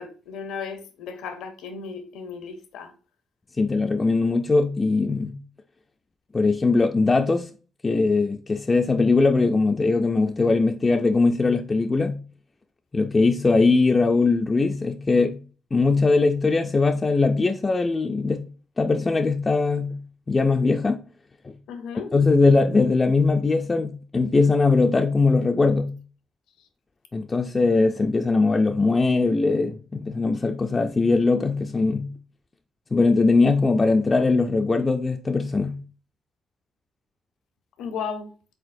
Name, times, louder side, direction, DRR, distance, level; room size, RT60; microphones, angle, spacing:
voice 1, 0.0-2.9 21.7-22.1 37.8-38.3, left 6 dB, 85° left, 0.7 m, -35 dB
voice 2, 3.6-5.4 6.3-7.5 7.8-12.2 12.9-15.4 15.7-18.5 18.8-20.0 20.3-21.0 21.4-21.5 22.1-26.0 27.1-32.1 32.9-35.8, left 3 dB, 25° left, 0.3 m, -21 dB
4.4 x 3.8 x 2.6 m
cardioid pair, 90°, 0 cm